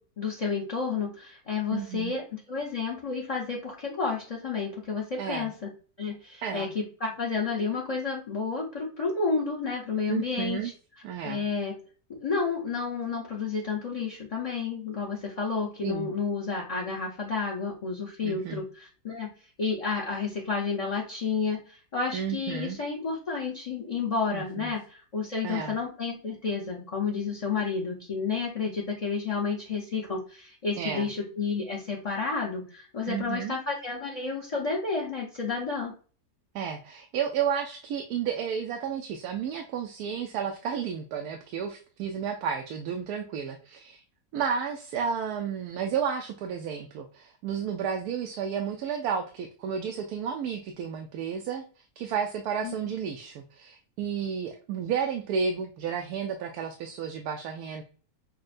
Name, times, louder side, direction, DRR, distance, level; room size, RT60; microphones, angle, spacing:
voice 1, 0.2-5.7 6.0-10.7 11.2-11.8 12.1-19.3 19.6-35.9 52.6-52.8, left 5 dB, 30° left, -3 dB, 0.7 m, -31 dB
voice 2, 1.7-2.1 5.2-5.5 6.4-6.7 10.1-10.7 11.0-11.4 15.8-16.1 18.2-18.6 22.1-22.8 24.3-24.7 25.4-25.8 30.8-31.1 33.0-33.5 36.5-44.0 44.3-51.6 52.0-57.8, right 7 dB, 85° right, 3 dB, 1.1 m, -32 dB
6.3 x 2.2 x 2.5 m, 0.39 s
omnidirectional pair, 1.6 m